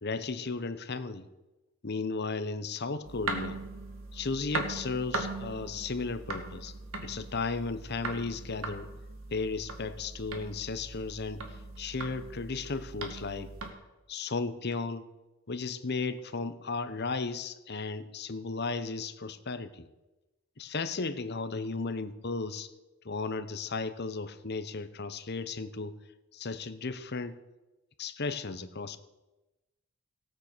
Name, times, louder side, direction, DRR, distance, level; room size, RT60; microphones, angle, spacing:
voice 1, 0.0-1.3 1.8-3.6 4.1-8.9 9.3-13.5 14.1-15.1 15.5-19.9 20.6-22.7 23.0-26.0 26.3-27.4 28.0-29.0, left 4 dB, 50° left, 11 dB, 0.9 m, -35 dB
sound 1, 3.0-13.7, right 2 dB, 65° right, 2.0 m, -39 dB
16.5 x 9.0 x 6.7 m, 1.1 s
head